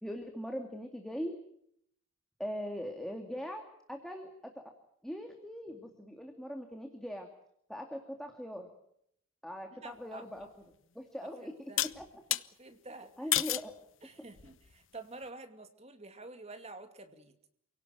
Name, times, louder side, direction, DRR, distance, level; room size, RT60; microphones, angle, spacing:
voice 1, 0.0-1.4 2.4-4.6 5.0-7.3 7.7-8.7 9.4-10.5 10.9-12.0 13.0-13.7, equal, ahead, 3 dB, 2.4 m, -41 dB
voice 2, 9.7-10.2 11.2-11.8 12.6-13.1 14.0-17.3, right 2 dB, 30° right, 7 dB, 2.4 m, -49 dB
sound 1, 10.4-10.5 11.8-12.4 13.3-13.7 14.4-14.8, left 14 dB, 65° left, 1.0 m, -31 dB
28.5 x 18.0 x 9.2 m, 0.73 s
head